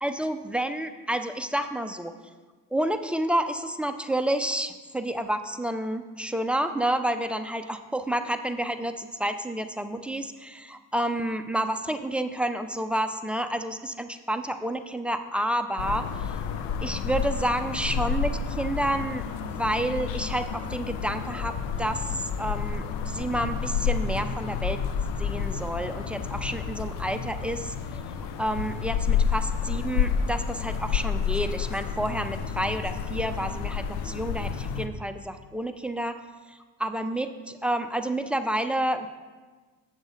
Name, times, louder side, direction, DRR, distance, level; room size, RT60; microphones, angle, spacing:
voice 1, 0.0-2.1 2.7-16.4 16.8-24.8 25.2-27.7 28.4-36.2 36.5-39.1, right 1 dB, 5° right, 7 dB, 0.4 m, -29 dB
sound 1, 15.8-34.9, left 6 dB, 75° left, 0.7 m, -30 dB
8.1 x 7.0 x 4.0 m, 1.4 s
supercardioid pair, 80°, 44 cm